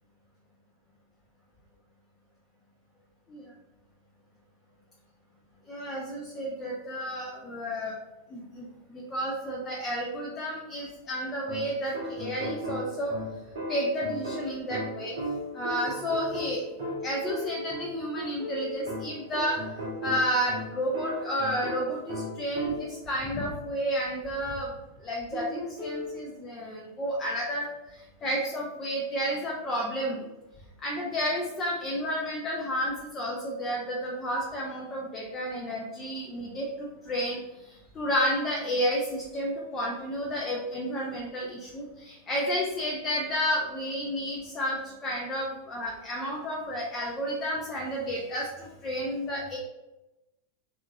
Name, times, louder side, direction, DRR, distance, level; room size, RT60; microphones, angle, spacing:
voice 1, 5.7-7.9 8.3-13.1 13.7-15.2 15.5-16.6 17.0-19.7 20.0-24.7 25.0-30.2 30.8-49.6, equal, 25° left, -2 dB, 0.5 m, -31 dB
sound 1, 11.5-23.1 25.3-26.2, equal, 55° right, 0.6 m, -36 dB
2.8 x 2.4 x 2.7 m, 0.98 s
figure-of-eight pair, 90°, 0 cm